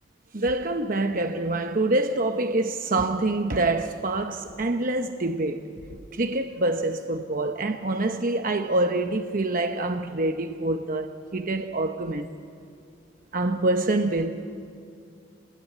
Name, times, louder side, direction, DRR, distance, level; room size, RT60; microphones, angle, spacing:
voice 1, 0.3-5.7 6.1-12.3 13.3-14.4, right 2 dB, 50° right, 0.9 m, -26 dB
28.0 x 20.5 x 9.1 m
head